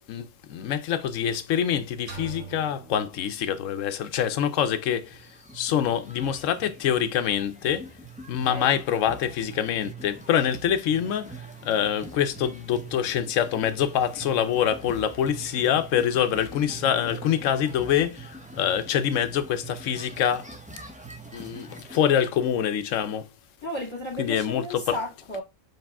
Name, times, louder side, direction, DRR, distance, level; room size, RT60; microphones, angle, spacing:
voice 1, 0.1-5.2 5.5-7.9 8.3-11.3 11.6-20.5 21.3-23.3 24.2-25.0, left 9 dB, 80° left, 1.0 m, -25 dB
sound 1, 2.1-4.0, right 5 dB, 65° right, 1.4 m, -43 dB
sound 2, 5.0-22.0, right 3 dB, 10° right, 0.6 m, -44 dB
voice 2, 23.6-25.4, left 1 dB, 20° left, 2.2 m, -33 dB
4.7 x 3.2 x 3.4 m
omnidirectional pair, 1.3 m